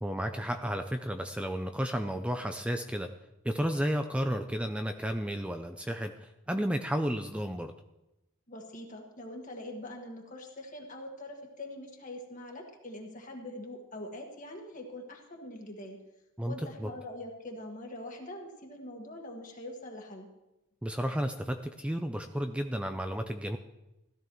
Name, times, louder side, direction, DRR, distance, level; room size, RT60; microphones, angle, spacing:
voice 1, 0.0-3.1 3.4-7.7 16.4-16.9 20.8-23.6, equal, 5° right, 6 dB, 0.4 m, -32 dB
voice 2, 8.5-16.0 16.5-20.3, left 1 dB, 35° left, 1 dB, 1.7 m, -43 dB
16.5 x 12.5 x 3.1 m, 0.95 s
head